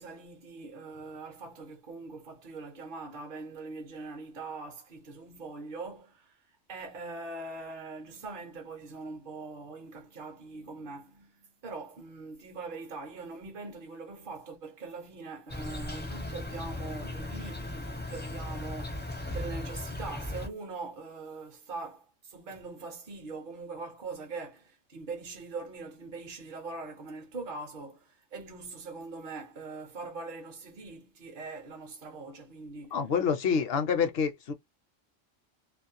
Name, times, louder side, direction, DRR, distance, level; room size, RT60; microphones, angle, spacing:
voice 1, 0.0-33.0, right 3 dB, 50° right, 0.7 m, -42 dB
Insect, 15.5-20.5, left 1 dB, 15° left, 0.4 m, -37 dB
voice 2, 32.9-34.5, left 6 dB, 60° left, 0.7 m, -27 dB
2.4 x 2.0 x 2.6 m
omnidirectional pair, 1.3 m